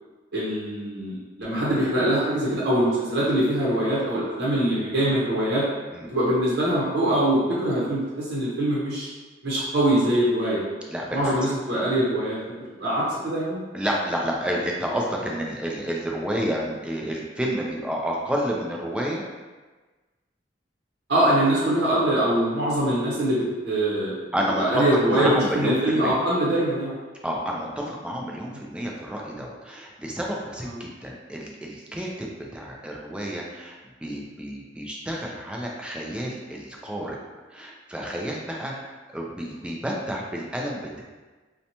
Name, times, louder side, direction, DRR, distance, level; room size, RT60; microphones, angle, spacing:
voice 1, 0.3-5.6 6.1-9.1 9.4-10.6 11.1-12.4 12.8-13.6 21.1-24.2 24.6-26.9 30.6-30.8, right 1 dB, 60° right, -8 dB, 0.8 m, -23 dB
voice 2, 10.9-11.3 13.7-19.2 24.3-26.2 27.2-37.2 37.5-38.9 39.1-41.0, equal, 5° right, -2 dB, 0.3 m, -30 dB
2.8 x 2.1 x 2.7 m, 1.3 s
head